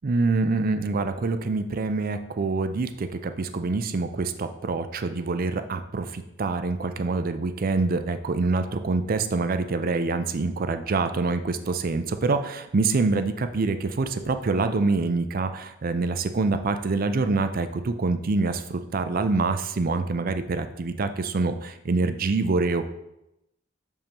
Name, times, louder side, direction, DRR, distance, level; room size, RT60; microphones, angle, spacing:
voice 1, 0.0-22.9, right 3 dB, 50° right, 9 dB, 0.5 m, -26 dB
6.7 x 5.5 x 3.0 m, 0.86 s
head